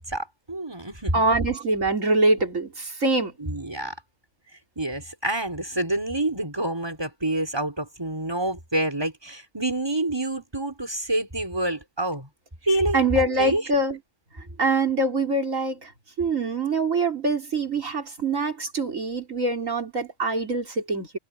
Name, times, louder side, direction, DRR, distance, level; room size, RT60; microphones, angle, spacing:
voice 1, 0.0-1.2 1.5-1.6 3.4-3.9 4.8-12.3 12.7-13.6, right 1 dB, 20° right, 4.9 m, -27 dB
voice 2, 1.1-3.3 12.9-14.0 14.6-15.9 16.2-21.2, right 2 dB, 90° right, 4.1 m, -24 dB
omnidirectional pair, 1.3 m